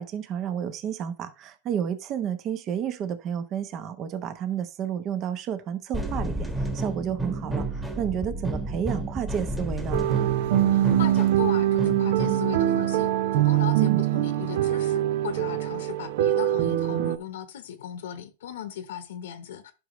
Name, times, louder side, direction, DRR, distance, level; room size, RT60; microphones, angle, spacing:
voice 1, 0.0-10.0 13.8-14.0, right 8 dB, 35° right, 0.9 m, -31 dB
sound 1, 5.9-12.6, right 2 dB, 5° right, 1.4 m, -31 dB
sound 2, 9.9-17.2, right 13 dB, 65° right, 0.6 m, -23 dB
voice 2, 10.6-19.7, left 10 dB, 80° left, 1.0 m, -37 dB
11.0 x 5.2 x 3.1 m
hypercardioid pair, 130°, 0 cm